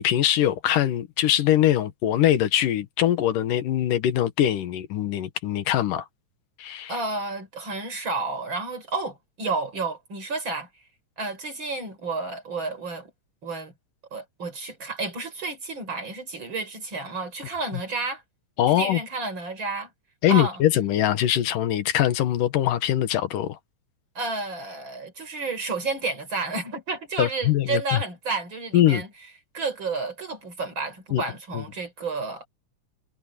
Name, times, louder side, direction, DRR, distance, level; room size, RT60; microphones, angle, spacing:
voice 1, 0.0-6.0 6.6-6.9 18.6-19.0 20.2-23.6 27.2-28.0 28.7-29.0 31.1-31.2 31.5-31.6, left 12 dB, 75° left, 2.9 m, -22 dB
voice 2, 6.9-10.7 11.2-13.1 13.4-13.7 14.1-18.2 18.7-19.9 20.3-20.6 24.2-29.1 29.5-32.5, right 3 dB, 35° right, 5.4 m, -31 dB
omnidirectional pair, 3.8 m